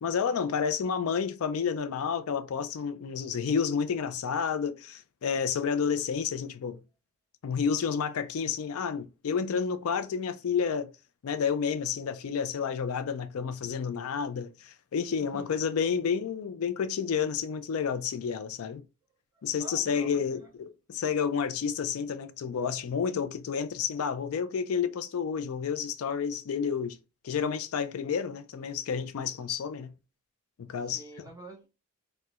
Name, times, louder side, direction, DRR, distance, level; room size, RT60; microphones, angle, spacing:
voice 1, 0.0-6.8 7.4-10.9 11.2-18.8 19.4-27.0 27.2-29.9 30.6-31.0, left 6 dB, 80° left, 0.4 m, -30 dB
voice 2, 15.2-15.6 19.3-20.5 30.8-31.7, right 2 dB, 15° right, 1.0 m, -47 dB
4.3 x 2.1 x 2.4 m
head